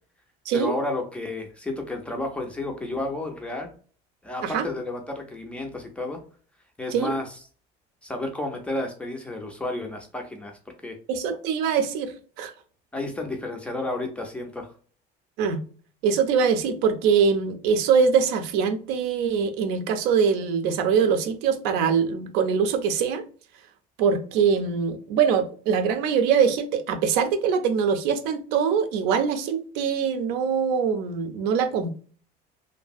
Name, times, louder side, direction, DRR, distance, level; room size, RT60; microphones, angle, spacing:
voice 1, 0.5-3.7 4.2-6.2 6.8-7.4 8.0-11.0 12.9-14.7, left 2 dB, 5° left, 0.3 m, -31 dB
voice 2, 11.1-12.1 12.4-12.5 15.4-15.6 16.0-23.2 24.0-32.0, right 6 dB, 80° right, 0.5 m, -23 dB
2.7 x 2.6 x 2.2 m
cardioid pair, 180°, 17 cm